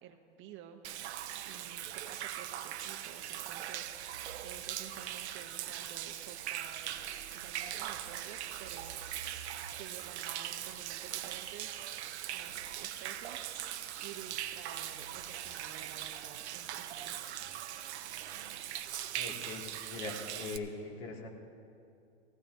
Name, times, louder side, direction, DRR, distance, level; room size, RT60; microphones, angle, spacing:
voice 1, 0.0-0.8 1.4-4.2 4.4-6.9 7.3-9.4 9.8-11.9 12.3-13.5 14.0-17.3, right 8 dB, 35° right, 6 dB, 0.9 m, -52 dB
Human voice / Rain / Stream, 0.8-20.6, right 11 dB, 75° right, 0.8 m, -41 dB
voice 2, 19.1-21.3, left 3 dB, 55° left, 0 dB, 2.3 m, -42 dB
18.5 x 16.5 x 2.7 m, 2.5 s
hypercardioid pair, 115°, 34 cm